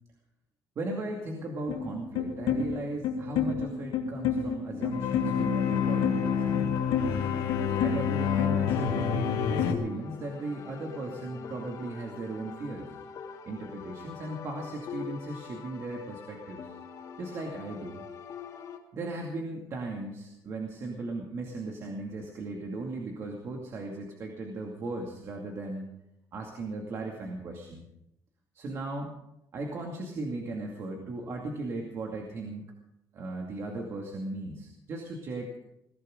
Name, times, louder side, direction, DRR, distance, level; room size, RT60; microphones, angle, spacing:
voice 1, 0.8-6.9 7.8-12.9 13.5-16.7 17.2-18.0 18.9-25.9 26.3-27.8 28.5-29.2 29.5-32.7 33.1-35.5, right 2 dB, 40° right, 1 dB, 2.4 m, -37 dB
sound 1, 1.7-9.7, left 7 dB, 90° left, 2.2 m, -28 dB
sound 2, 6.7-18.8, left 6 dB, 55° left, 2.8 m, -44 dB
21.0 x 16.0 x 3.9 m, 0.83 s
cardioid pair, 160°, 7 cm